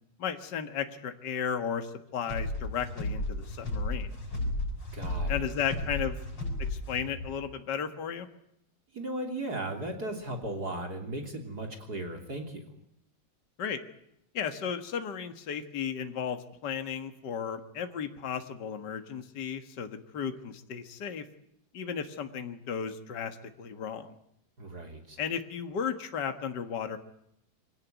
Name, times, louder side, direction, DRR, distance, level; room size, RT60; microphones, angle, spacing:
voice 1, 0.2-4.1 5.3-6.2 6.6-8.3 13.6-13.8 14.3-21.2 21.7-24.1 25.2-27.0, left 7 dB, 55° left, 8 dB, 2.2 m, -34 dB
sound 1, 2.2-7.3, left 2 dB, 75° left, 7.5 m, -34 dB
voice 2, 4.9-5.4 8.9-12.6 24.6-25.2, right 1 dB, 50° right, 4 dB, 3.7 m, -36 dB
25.0 x 18.0 x 9.3 m, 0.77 s
omnidirectional pair, 2.3 m